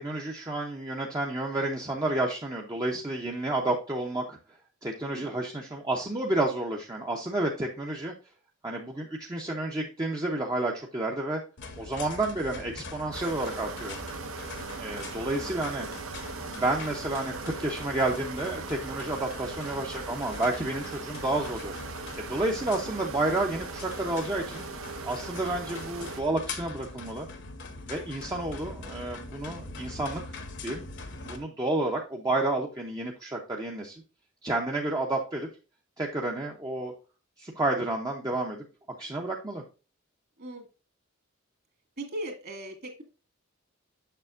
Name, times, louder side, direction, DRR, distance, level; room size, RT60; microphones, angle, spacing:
voice 1, 0.0-4.4 4.8-8.1 8.6-11.4 11.8-14.0 14.8-15.9 16.5-21.7 22.2-24.6 25.0-27.3 27.9-30.2 30.6-30.8 31.2-34.0 34.4-35.5 36.0-36.9 37.4-38.6 39.0-39.6, right 2 dB, 20° right, 0 dB, 0.7 m, -30 dB
voice 2, 5.1-5.4 15.3-15.6 40.4-40.7 42.0-43.0, right 1 dB, 50° right, 3 dB, 2.1 m, -39 dB
sound 1, 11.6-31.4, left 3 dB, 60° left, 1.0 m, -42 dB
sound 2, 13.1-26.2, right 4 dB, 90° right, 1.0 m, -39 dB
6.7 x 6.6 x 2.5 m, 0.33 s
head